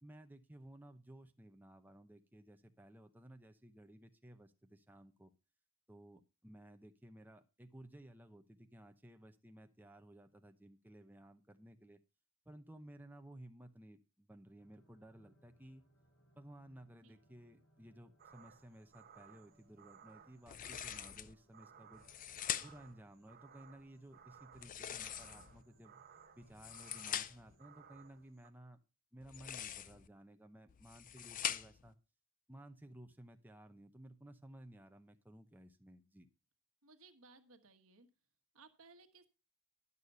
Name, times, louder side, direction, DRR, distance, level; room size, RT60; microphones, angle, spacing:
voice 1, 0.0-5.3 5.9-12.0 12.5-15.8 16.3-22.1 22.6-25.9 26.4-28.8 29.1-32.0 32.5-36.3, right 1 dB, 10° right, 6 dB, 0.7 m, -57 dB
sound 1, 14.6-28.2, right 1 dB, 75° left, 2.6 m, -71 dB
sound 2, 18.2-28.5, right 8 dB, 45° right, 0.9 m, -61 dB
sound 3, 20.5-21.3 21.9-22.9 24.5-25.6 26.4-27.5 29.2-30.1 30.7-31.9, left 10 dB, 35° left, 0.5 m, -43 dB
voice 2, 36.8-38.1 38.5-39.3, right 3 dB, 65° right, 7 dB, 1.4 m, -62 dB
11.0 x 6.6 x 5.5 m, 0.30 s
head